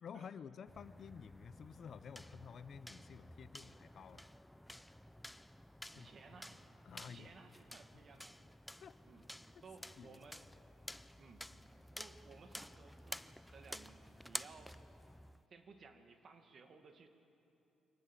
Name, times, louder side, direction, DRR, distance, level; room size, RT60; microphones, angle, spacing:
voice 1, 0.0-4.3 6.0-6.1 6.9-7.3 8.8-9.0 10.0-10.1, left 7 dB, 55° left, 14 dB, 0.7 m, -52 dB
sound 1, 0.7-15.4, left 1 dB, 5° left, 0.5 m, -52 dB
voice 2, 5.9-6.6 7.0-8.3 9.0-9.2 9.6-10.5 11.2-11.5 12.0-14.8 15.5-17.1, right 4 dB, 50° right, 6 dB, 2.1 m, -58 dB
24.0 x 18.5 x 7.5 m, 2.8 s
cardioid pair, 90°, 0 cm